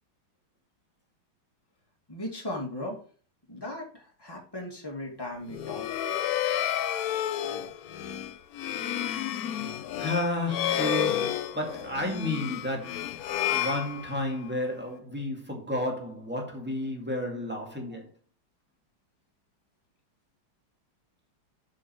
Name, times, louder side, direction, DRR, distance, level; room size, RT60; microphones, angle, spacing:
voice 1, 2.1-3.0 3.5-6.1, left 1 dB, 10° left, 2.3 m, -37 dB
sound 1, 5.5-14.5, left 10 dB, 90° left, 0.8 m, -31 dB
voice 2, 10.0-13.2 13.5-18.1, left 1 dB, 5° right, 2.0 m, -32 dB
7.3 x 6.6 x 4.5 m
omnidirectional pair, 2.3 m